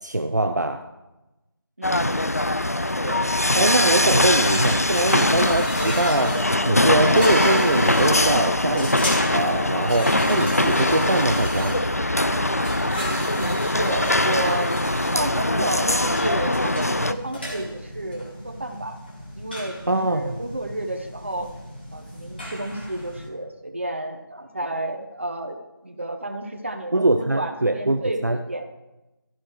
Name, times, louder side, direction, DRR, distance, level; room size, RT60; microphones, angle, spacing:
voice 1, 0.0-0.9 3.5-11.8 19.9-20.4 26.9-28.4, right 2 dB, 50° right, 5 dB, 0.6 m, -23 dB
sound 1, 1.8-17.1, left 1 dB, 40° left, 0.4 m, -22 dB
voice 2, 1.8-2.2 3.0-3.3 4.0-4.5 13.4-14.7 15.1-19.0 19.4-21.5 21.9-25.6 25.8-28.7, right 1 dB, 30° right, 4 dB, 1.0 m, -31 dB
sound 2, 4.3-23.3, equal, 25° left, 2.2 m, -34 dB
16.0 x 12.0 x 3.1 m, 1.0 s
figure-of-eight pair, 170°, 12 cm